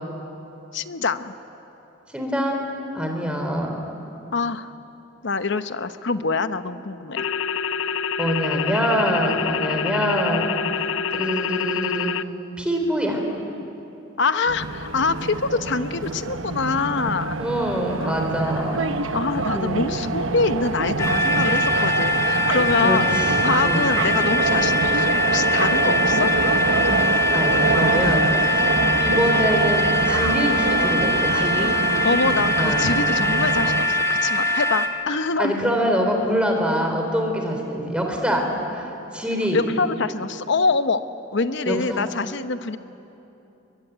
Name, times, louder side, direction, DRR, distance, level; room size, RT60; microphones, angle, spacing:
voice 1, 0.7-1.3 4.3-4.7 5.2-7.3 14.2-17.4 18.0-18.8 19.1-23.1 23.4-26.3 28.8-29.0 32.0-35.5 39.5-41.0 41.3-42.8, left 4 dB, 65° left, 11 dB, 0.9 m, -25 dB
voice 2, 2.1-2.6 2.9-3.8 8.2-10.6 11.1-12.1 12.6-13.2 17.4-18.9 19.5-19.9 22.8-23.2 23.6-23.9 25.8-26.0 27.3-28.7 29.0-31.7 32.6-32.9 35.4-38.4 38.7-38.9 39.1-39.6 41.7-42.0, equal, 5° right, 2 dB, 3.7 m, -24 dB
sound 1, 7.2-12.2, left 6 dB, 85° left, 0.6 m, -26 dB
sound 2, 14.5-33.9, right 3 dB, 80° right, 1.1 m, -25 dB
sound 3, 21.0-34.9, left 1 dB, 15° left, 1.8 m, -22 dB
23.5 x 22.0 x 9.2 m, 3.0 s
head